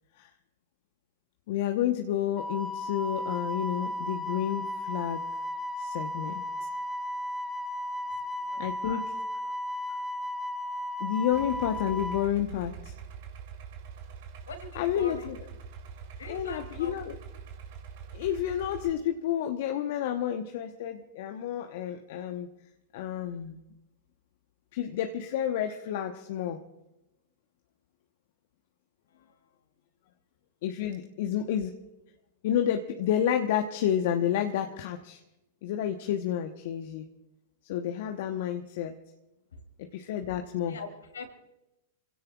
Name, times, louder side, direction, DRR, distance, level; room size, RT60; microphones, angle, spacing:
voice 1, 1.5-5.3 5.8-6.4 8.6-9.0 11.0-12.9 14.7-15.3 16.3-17.2 18.1-22.5 22.9-23.6 24.7-26.6 30.6-31.8 32.4-35.2 35.6-37.0 37.6-39.0 39.8-40.8, left 10 dB, 55° left, 5 dB, 1.1 m, -30 dB
Wind instrument woodwind instrument, 2.4-12.3, left 1 dB, 10° left, 1.9 m, -34 dB
voice 2, 8.3-9.0 14.5-15.3 16.2-16.9 29.1-29.4 39.5-39.6 40.7-41.3, left 4 dB, 75° left, 5 dB, 3.0 m, -43 dB
Idling, 11.3-18.9, right 6 dB, 55° right, 2.8 m, -44 dB
28.0 x 17.0 x 2.4 m, 0.96 s
figure-of-eight pair, 100°, 0 cm